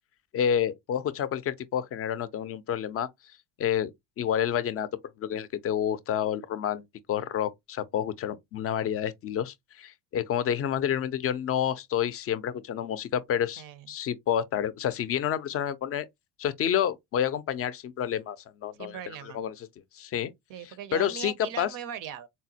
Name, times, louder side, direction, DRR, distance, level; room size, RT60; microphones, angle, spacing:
voice 1, 0.3-3.1 3.6-4.9 5.2-16.1 16.4-19.5 19.9-20.3 20.9-21.7, left 9 dB, 35° left, 0.4 m, -29 dB
voice 2, 18.8-19.4 20.5-22.3, right 9 dB, 50° right, 0.5 m, -39 dB
3.8 x 2.1 x 2.7 m
supercardioid pair, 85°, 43 cm